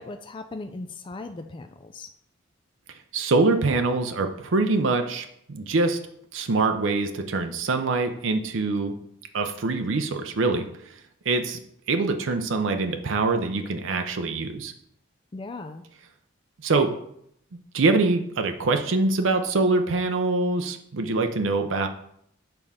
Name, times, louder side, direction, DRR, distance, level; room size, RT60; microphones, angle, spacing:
voice 1, 0.0-2.1 15.3-15.8, left 3 dB, 25° left, 7 dB, 0.3 m, -38 dB
voice 2, 3.1-6.0 6.3-9.0 9.3-10.7 11.3-11.6 11.9-14.7 16.6-16.9 17.7-21.9, right 3 dB, 65° right, 6 dB, 0.6 m, -24 dB
6.8 x 3.6 x 5.5 m, 0.71 s
head